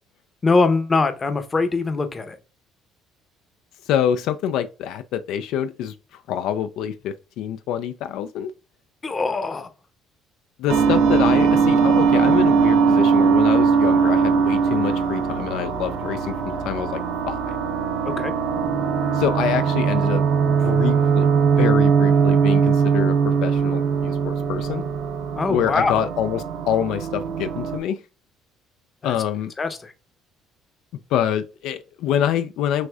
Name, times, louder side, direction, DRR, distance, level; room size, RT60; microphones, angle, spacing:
voice 1, 0.4-2.4 9.0-9.7 18.1-18.3 25.3-25.9 29.0-29.1 29.6-29.9, left 3 dB, 25° left, 0.7 m, -22 dB
voice 2, 3.9-8.5 10.6-17.0 17.3-17.6 19.1-24.8 25.5-28.0 29.0-29.5 31.1-32.9, left 9 dB, 75° left, 0.3 m, -26 dB
sound 1, 10.7-27.8, right 6 dB, 80° right, 1.2 m, -20 dB
6.3 x 2.6 x 2.3 m
cardioid pair, 105°, 0 cm